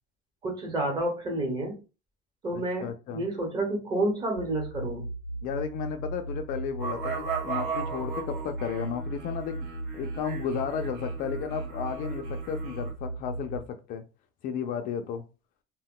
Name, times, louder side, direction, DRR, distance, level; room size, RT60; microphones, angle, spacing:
voice 1, 0.4-1.8 2.4-5.1, right 1 dB, 25° right, 1.0 m, -30 dB
voice 2, 2.5-3.2 5.4-9.7 9.9-14.0 14.4-15.2, left 7 dB, 50° left, 0.4 m, -34 dB
sound 1, 4.4-13.6, right 2 dB, 85° right, 1.4 m, -37 dB
sound 2, 6.8-12.9, right 5 dB, 70° right, 1.1 m, -37 dB
2.2 x 2.1 x 3.7 m
cardioid pair, 165°, 18 cm